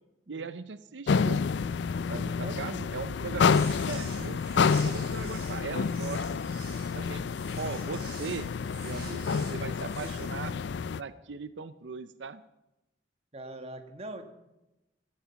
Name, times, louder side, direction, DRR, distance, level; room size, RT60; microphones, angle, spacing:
voice 1, 0.3-1.5 2.1-6.4 6.9-7.3 7.6-8.5 8.8-10.6 11.0-12.4, right 4 dB, 90° right, 13 dB, 0.6 m, -39 dB
sound 1, 1.1-11.0, left 5 dB, 75° left, 0.4 m, -29 dB
sound 2, 3.3-10.3, right 5 dB, 60° right, 5.2 m, -48 dB
voice 2, 13.3-14.2, right 1 dB, 35° right, 6 dB, 1.6 m, -42 dB
16.5 x 12.5 x 5.8 m, 0.93 s
head